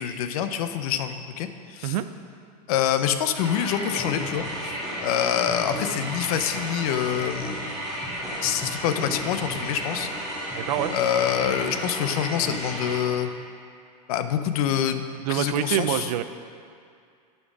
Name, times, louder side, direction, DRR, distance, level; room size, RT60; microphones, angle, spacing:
voice 1, 0.0-1.9 2.7-7.6 8.4-10.1 10.9-13.3 14.1-16.1, left 9 dB, 60° left, 9 dB, 0.6 m, -26 dB
sound 1, 3.3-13.0, equal, ahead, 2.3 m, -33 dB
voice 2, 10.6-10.9 15.3-16.2, right 12 dB, 70° right, 11 dB, 0.5 m, -25 dB
11.0 x 4.3 x 6.1 m, 2.3 s
supercardioid pair, 150°, 21 cm